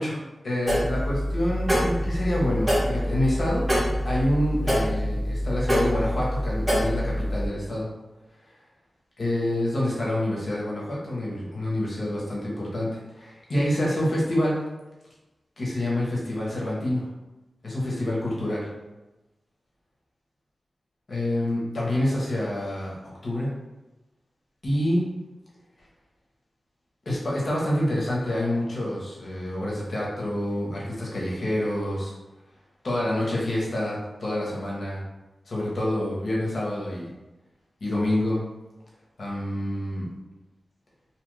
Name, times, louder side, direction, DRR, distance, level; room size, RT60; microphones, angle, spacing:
voice 1, 0.0-3.6 4.0-7.9 9.2-14.6 15.6-17.0 17.6-18.7 21.1-23.0 23.2-23.5 24.6-25.0 27.0-32.1 32.8-35.0 35.5-37.1 37.8-38.4 39.2-40.1, left 1 dB, 55° left, -5 dB, 1.0 m, -27 dB
sound 1, 0.7-7.5, equal, 20° right, 1.2 m, -26 dB
2.8 x 2.5 x 3.2 m, 1.1 s
wide cardioid pair, 85°, 0 cm